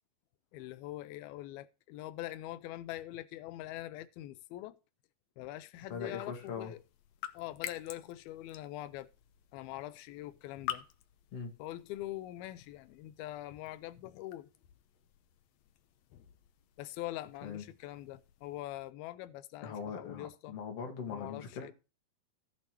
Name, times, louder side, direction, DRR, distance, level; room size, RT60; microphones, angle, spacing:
voice 1, 0.5-4.8 5.4-6.8 7.3-9.1 9.5-10.8 11.6-14.5 16.8-20.6 21.1-21.7, left 15 dB, 90° left, 2.6 m, -43 dB
sound 1, 5.7-18.9, left 12 dB, 75° left, 1.6 m, -49 dB
voice 2, 5.9-6.7 11.3-11.5 17.4-17.7 19.6-21.7, left 6 dB, 45° left, 2.9 m, -41 dB
14.5 x 8.7 x 3.1 m
omnidirectional pair, 4.2 m